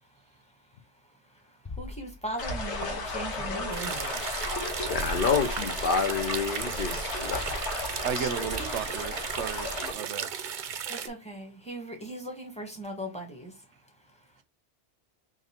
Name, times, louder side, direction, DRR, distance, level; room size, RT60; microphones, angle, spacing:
Bass drum, 1.6-3.1, left 3 dB, 25° left, 0.4 m, -43 dB
voice 1, 1.8-4.0 10.9-13.5, right 1 dB, 5° left, 1.2 m, -38 dB
sound 1, 2.4-9.9, left 2 dB, 80° left, 1.5 m, -34 dB
sound 2, 3.7-11.1, right 8 dB, 55° right, 0.6 m, -36 dB
voice 2, 4.9-7.9 8.2-8.3, left 5 dB, 55° left, 0.7 m, -29 dB
voice 3, 8.0-10.3, right 7 dB, 90° right, 1.0 m, -34 dB
3.9 x 3.0 x 4.3 m
omnidirectional pair, 1.1 m